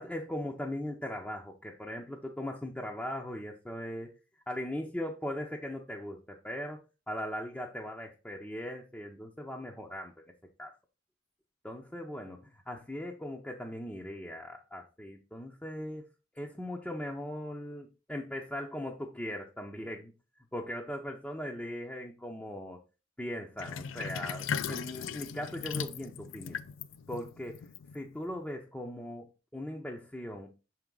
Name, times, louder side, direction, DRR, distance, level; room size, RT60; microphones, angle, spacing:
voice 1, 0.0-4.1 4.5-6.8 7.1-10.1 10.6-10.7 11.6-16.0 16.3-20.1 20.5-22.8 23.2-26.6 27.1-27.6 27.9-30.5, left 1 dB, 5° left, -1 dB, 0.6 m, -39 dB
Sink (filling or washing), 23.6-28.3, left 6 dB, 80° left, 0.4 m, -38 dB
6.2 x 4.6 x 3.8 m, 0.31 s
head